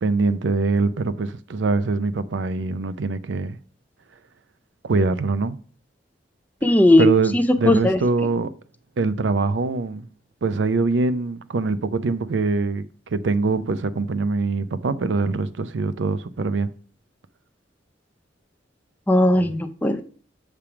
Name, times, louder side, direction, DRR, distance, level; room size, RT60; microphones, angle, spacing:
voice 1, 0.0-3.6 4.8-5.6 7.0-8.5 9.0-10.1 10.4-12.9 13.1-16.7, right 3 dB, 75° right, 0.5 m, -23 dB
voice 2, 6.6-8.0 19.1-20.0, left 1 dB, 10° left, 0.5 m, -17 dB
7.1 x 3.4 x 5.7 m
head